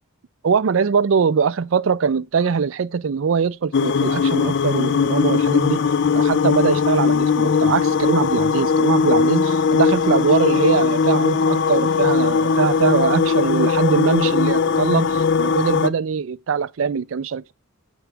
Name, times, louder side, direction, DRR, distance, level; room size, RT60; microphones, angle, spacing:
voice 1, 0.4-5.8 6.1-17.5, right 6 dB, 70° right, 0.4 m, -22 dB
sound 1, 3.7-15.9, left 5 dB, 60° left, 0.4 m, -19 dB
7.9 x 6.0 x 3.4 m
head